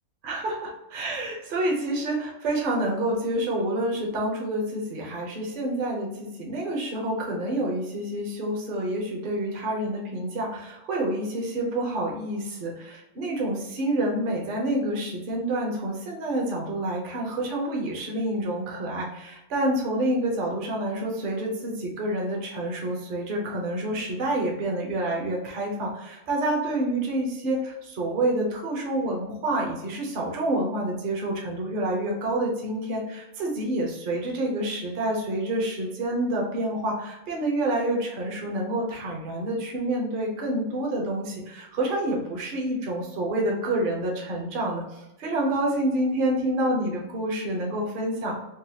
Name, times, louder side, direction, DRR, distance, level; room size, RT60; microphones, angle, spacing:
voice 1, 0.2-48.4, right 1 dB, 45° right, -1 dB, 0.9 m, -28 dB
3.9 x 2.4 x 2.8 m, 0.93 s
omnidirectional pair, 1.4 m